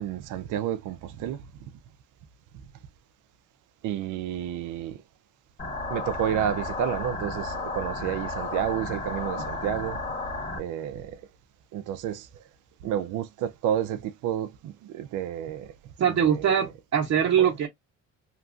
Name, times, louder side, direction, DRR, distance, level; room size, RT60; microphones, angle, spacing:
voice 1, 0.0-1.4 3.8-5.0 5.9-10.0 10.6-11.2 11.7-12.3 12.8-15.7 16.1-16.5 17.4-17.5, right 10 dB, 90° right, 0.5 m, -30 dB
sound 1, 5.6-10.6, left 2 dB, 25° left, 1.3 m, -33 dB
voice 2, 16.0-17.7, right 8 dB, 60° right, 0.9 m, -22 dB
2.9 x 2.4 x 2.4 m
cardioid pair, 90°, 30 cm